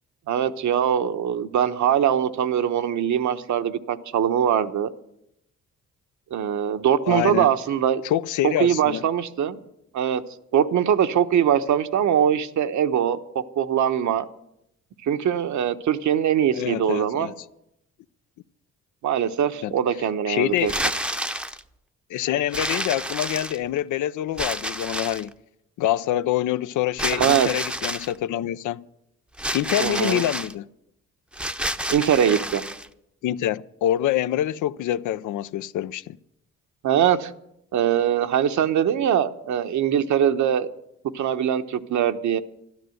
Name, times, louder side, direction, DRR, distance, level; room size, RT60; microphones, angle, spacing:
voice 1, 0.3-4.9 6.3-8.0 8.4-9.6 9.9-10.2 10.5-14.2 15.0-17.3 19.0-20.7 27.1-27.5 29.8-30.2 31.9-32.6 36.8-37.3 37.7-40.7 41.1-42.4, right 9 dB, 70° right, 1.1 m, -22 dB
voice 2, 7.1-7.5 8.0-9.1 16.5-17.3 19.6-19.7 20.3-20.8 22.1-25.3 25.8-28.8 29.5-30.7 33.2-36.2, left 12 dB, 80° left, 0.6 m, -26 dB
sound 1, 20.6-21.6 22.5-23.8 24.4-25.3 27.0-28.1 29.4-30.5 31.3-32.9, right 1 dB, 5° right, 0.7 m, -29 dB
12.5 x 12.5 x 7.8 m
cardioid pair, 90°, 30 cm